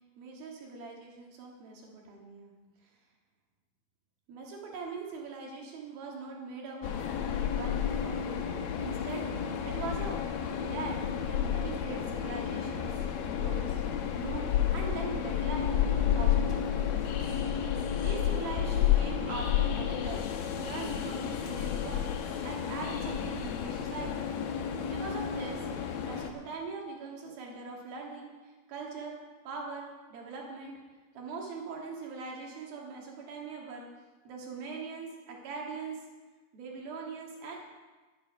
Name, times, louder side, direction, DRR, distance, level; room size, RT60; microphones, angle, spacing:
voice 1, 0.2-2.5 4.3-9.2 9.6-10.2 10.6-13.8 14.1-17.0 18.0-20.2 20.6-22.1 22.4-24.3 24.9-25.6 26.0-29.2 29.5-30.8 31.1-33.9 34.3-36.0 36.5-37.6, right 4 dB, 60° right, -1 dB, 3.5 m, -41 dB
Train, 6.8-26.3, left 9 dB, 75° left, 2.2 m, -31 dB
11.5 x 11.0 x 5.4 m, 1.3 s
omnidirectional pair, 5.2 m